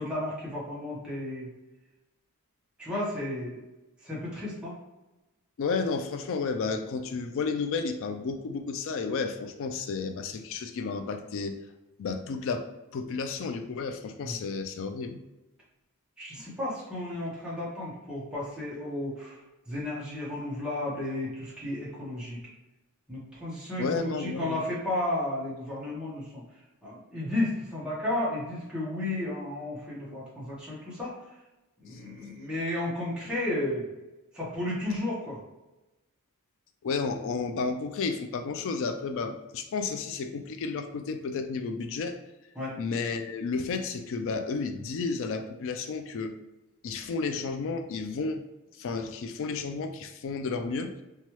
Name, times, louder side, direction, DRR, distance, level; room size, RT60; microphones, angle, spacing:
voice 1, 0.0-1.5 2.8-3.6 4.0-4.7 14.2-14.4 16.2-19.4 19.7-22.4 23.1-26.4 26.8-31.2 31.8-33.9 34.3-35.4 42.5-42.7, left 1 dB, 5° right, -8 dB, 0.8 m, -33 dB
voice 2, 5.6-11.5 12.0-12.6 12.9-15.2 23.8-24.6 31.9-32.0 36.8-42.2 42.8-46.3 46.8-48.4 48.8-51.0, left 4 dB, 60° left, 6 dB, 0.3 m, -32 dB
3.0 x 2.3 x 2.9 m, 1.0 s
head